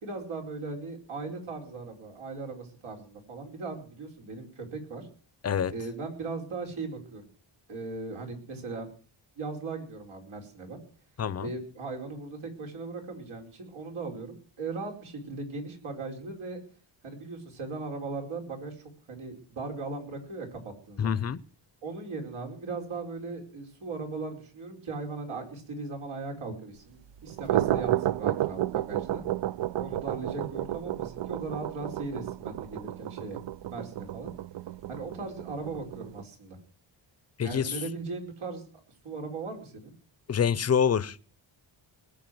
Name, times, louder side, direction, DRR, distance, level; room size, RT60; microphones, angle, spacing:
voice 1, 0.0-5.1 5.7-7.2 7.7-8.9 9.4-10.8 11.4-16.6 17.0-21.2 21.8-29.2 29.8-33.4 33.7-34.3 34.9-36.6 37.4-38.7 39.0-39.9, right 3 dB, 85° right, 4.9 m, -38 dB
voice 2, 11.2-11.5 21.0-21.4 37.4-37.8 40.3-41.2, left 7 dB, 30° left, 0.7 m, -26 dB
sound 1, 27.2-36.2, right 13 dB, 60° right, 0.6 m, -31 dB
20.5 x 7.3 x 7.8 m
wide cardioid pair, 135°, 48 cm